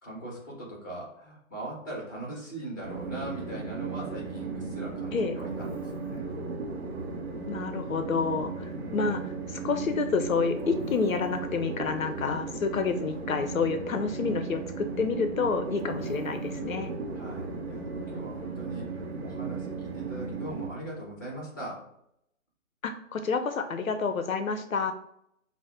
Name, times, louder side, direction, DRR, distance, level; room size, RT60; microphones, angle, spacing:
voice 1, 0.0-6.3 8.7-9.0 9.3-9.4 17.1-21.8, right 1 dB, 15° left, -3 dB, 0.7 m, -40 dB
Train, 2.8-20.7, right 4 dB, 50° right, 0.7 m, -36 dB
voice 2, 7.5-16.9 22.8-24.9, left 5 dB, 75° left, 7 dB, 0.5 m, -29 dB
5.4 x 2.0 x 2.4 m, 0.74 s
figure-of-eight pair, 150°, 41 cm